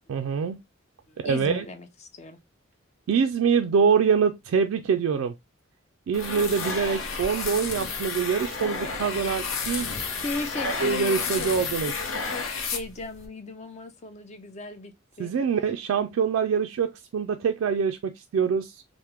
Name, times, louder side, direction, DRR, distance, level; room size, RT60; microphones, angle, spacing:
voice 1, 0.1-0.6 1.2-1.6 3.1-5.3 6.1-10.1 10.6-11.9 15.2-18.8, right 6 dB, 85° right, 0.3 m, -25 dB
voice 2, 1.1-2.4 10.2-15.3, left 3 dB, 35° left, 0.5 m, -37 dB
sound 1, 6.1-13.3, left 4 dB, 85° left, 0.7 m, -31 dB
3.4 x 2.0 x 2.9 m
head